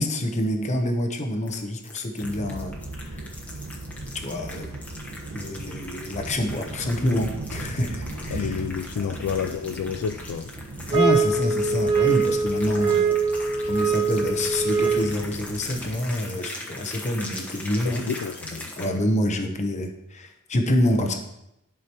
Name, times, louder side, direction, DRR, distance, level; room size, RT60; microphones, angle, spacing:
voice 1, 0.0-3.2 4.1-4.7 5.3-8.6 9.0-9.2 10.9-13.2 13.7-18.1 18.8-21.2, left 1 dB, 30° left, 5 dB, 0.8 m, -27 dB
sound 1, 1.4-18.8, left 1 dB, 5° left, 1.0 m, -41 dB
sound 2, 2.2-16.0, right 2 dB, 80° right, 1.2 m, -38 dB
voice 2, 8.3-10.5 17.8-18.7, left 7 dB, 75° left, 9 dB, 0.3 m, -30 dB
sound 3, 10.9-15.3, right 5 dB, 25° right, 0.8 m, -23 dB
11.0 x 4.9 x 3.0 m, 0.85 s
head